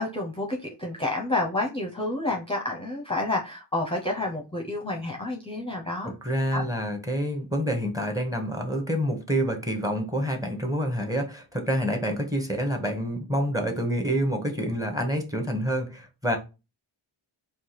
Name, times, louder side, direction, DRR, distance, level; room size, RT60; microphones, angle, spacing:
voice 1, 0.0-6.1 6.5-6.7, left 2 dB, 10° left, 0.8 m, -29 dB
voice 2, 6.0-16.4, equal, 5° right, 1.1 m, -27 dB
4.6 x 2.4 x 4.0 m
wide cardioid pair, 65°, 47 cm